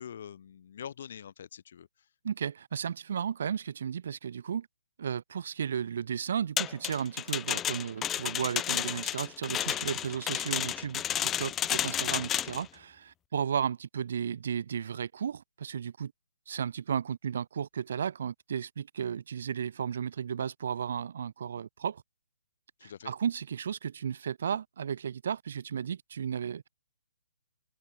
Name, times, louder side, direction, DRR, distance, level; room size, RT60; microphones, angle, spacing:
voice 1, 0.0-2.1 22.8-23.1, left 8 dB, 50° left, 2.2 m, -45 dB
voice 2, 2.2-4.7 5.0-16.1 16.5-22.0 22.8-26.7, right 8 dB, 50° right, 0.6 m, -34 dB
sound 1, 6.6-12.6, left 11 dB, 15° left, 0.3 m, -31 dB
open air
figure-of-eight pair, 130°, 0 cm